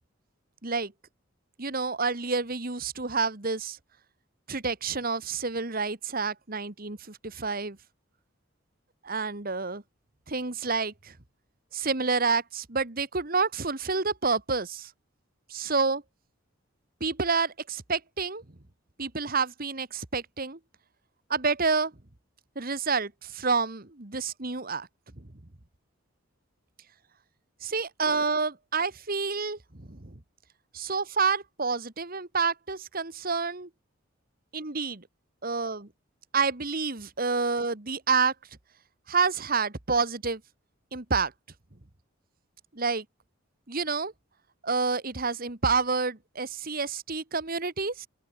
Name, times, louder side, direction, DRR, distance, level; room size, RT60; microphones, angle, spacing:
voice 1, 1.6-3.8 4.5-7.8 9.0-9.8 10.3-11.2 11.7-14.9 15.5-16.0 17.0-18.4 19.0-20.6 21.3-21.9 22.6-24.9 25.2-25.3 27.6-30.1 30.7-33.7 34.5-35.1 35.4-35.9 36.3-38.3 39.1-40.4 40.9-41.3 42.7-43.1 43.7-44.1 44.6-48.1, right 4 dB, 45° right, 1.9 m, -28 dB
open air
head